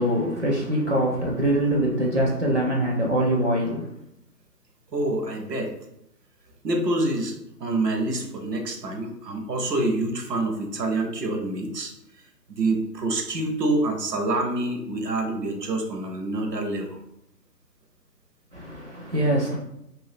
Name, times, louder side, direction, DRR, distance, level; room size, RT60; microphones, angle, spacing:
voice 1, 0.0-3.9 18.5-19.6, right 1 dB, 45° right, -2 dB, 0.5 m, -23 dB
voice 2, 4.9-5.7 6.6-7.3 7.6-11.9 12.5-17.0, right 2 dB, 75° right, 3 dB, 0.8 m, -26 dB
2.6 x 2.2 x 3.3 m, 0.81 s
figure-of-eight pair, 150°, 50 cm